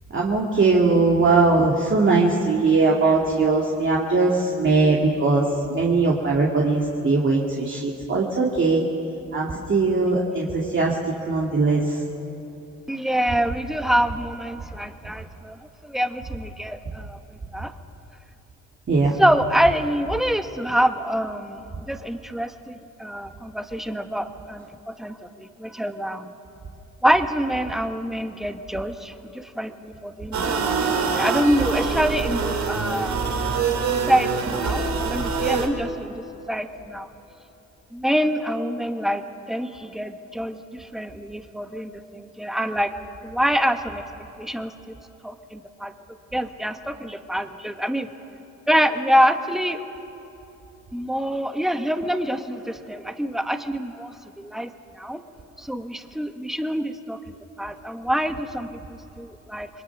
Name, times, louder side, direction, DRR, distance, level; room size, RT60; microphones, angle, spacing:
voice 1, 0.1-8.9 9.3-12.0 18.9-19.2, right 3 dB, 40° right, -3 dB, 2.4 m, -20 dB
voice 2, 12.9-17.2 17.5-17.7 19.2-26.3 27.0-30.7 31.1-33.2 33.8-37.1 37.9-42.9 43.2-44.0 44.4-44.9 45.2-45.9 46.3-48.1 48.7-49.8 50.9-55.2 55.6-59.7, equal, ahead, 7 dB, 1.2 m, -26 dB
sound 1, 30.3-35.7, right 5 dB, 65° right, 2.9 m, -24 dB
27.5 x 22.0 x 6.0 m, 3.0 s
cardioid pair, 90°, 30 cm